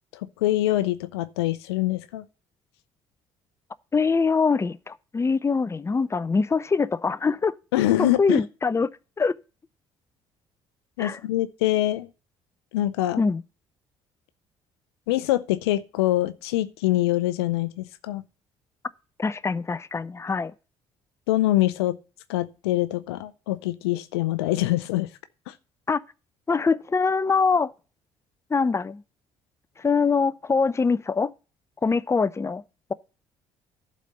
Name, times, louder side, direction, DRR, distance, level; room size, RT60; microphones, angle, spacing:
voice 1, 0.4-2.2 7.7-8.4 11.0-12.1 12.7-13.2 15.1-18.2 21.3-22.0 22.3-25.1 25.5-25.6, left 15 dB, 90° left, 0.5 m, -24 dB
voice 2, 3.9-7.5 8.0-8.9 9.2-9.3 11.0-11.2 13.2-13.4 19.2-20.5 25.9-26.0 26.5-27.7 28.5-29.0 29.8-31.3 31.8-32.6, left 4 dB, 20° left, 0.5 m, -23 dB
11.5 x 4.2 x 6.6 m
hypercardioid pair, 55°, 13 cm